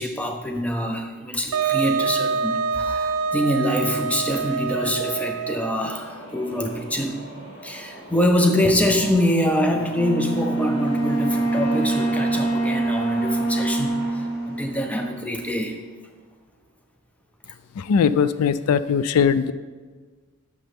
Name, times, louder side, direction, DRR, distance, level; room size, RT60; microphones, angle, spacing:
voice 1, 0.0-7.2 7.6-15.8, equal, 5° left, 4 dB, 0.6 m, -24 dB
Wind instrument woodwind instrument, 1.5-5.9, right 5 dB, 80° right, 0.4 m, -26 dB
sound 1, 1.9-16.1, right 1 dB, 50° left, 2.4 m, -41 dB
Wind instrument woodwind instrument 2, 9.9-15.4, right 2 dB, 30° left, 1.3 m, -25 dB
voice 2, 17.8-19.5, left 6 dB, 85° left, 14 dB, 0.3 m, -20 dB
9.8 x 6.5 x 3.5 m, 1.4 s
head